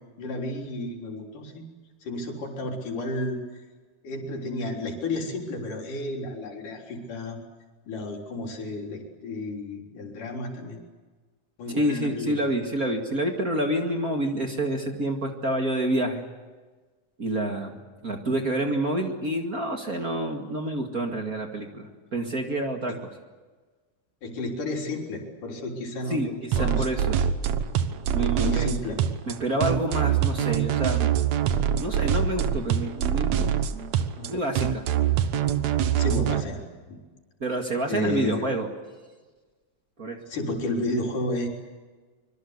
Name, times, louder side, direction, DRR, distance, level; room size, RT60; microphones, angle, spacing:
voice 1, 0.2-1.6 2.0-3.4 4.0-7.4 7.9-10.8 11.6-12.4 24.2-26.9 28.4-29.0 34.2-34.3 36.0-37.0 37.9-38.4 40.3-41.5, left 2 dB, 85° left, 1 dB, 5.2 m, -32 dB
voice 2, 11.7-16.2 17.2-23.0 26.1-27.2 28.1-28.7 29.3-31.2 31.8-33.9 34.3-34.8 37.4-38.7 40.0-40.2, right 1 dB, 30° right, 3 dB, 2.2 m, -28 dB
sound 1, 26.5-36.4, right 9 dB, 65° right, 2.3 m, -24 dB
25.0 x 23.5 x 8.1 m, 1.3 s
omnidirectional pair, 3.6 m